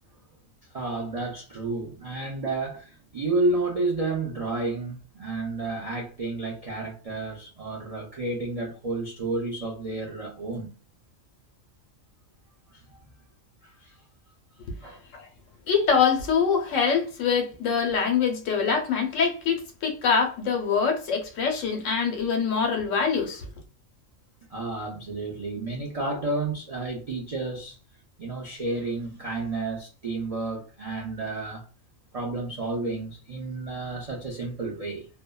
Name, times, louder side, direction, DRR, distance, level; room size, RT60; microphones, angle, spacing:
voice 1, 0.7-10.7 12.7-13.0 13.6-14.0 14.8-15.0 24.5-27.8 28.2-31.7 32.1-35.1, right 2 dB, 60° right, 0.3 m, -31 dB
voice 2, 15.7-23.5, left 6 dB, 75° left, 1.0 m, -24 dB
2.6 x 2.1 x 2.2 m
omnidirectional pair, 1.3 m